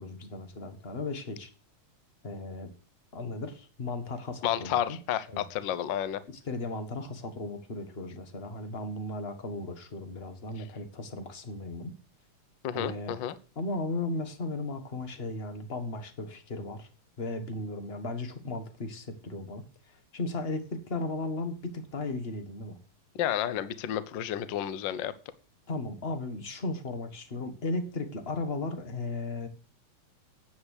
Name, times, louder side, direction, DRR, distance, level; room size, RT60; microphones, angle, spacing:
voice 1, 0.0-1.5 2.2-2.7 3.1-5.0 5.3-5.4 6.3-11.9 12.7-13.1 13.5-16.9 17.2-22.8 25.7-29.5, left 2 dB, 30° left, 8 dB, 1.2 m, -36 dB
voice 2, 4.4-6.2 12.6-13.3 23.2-25.1, left 11 dB, 70° left, 15 dB, 1.1 m, -31 dB
9.4 x 9.3 x 6.6 m, 0.37 s
omnidirectional pair, 3.3 m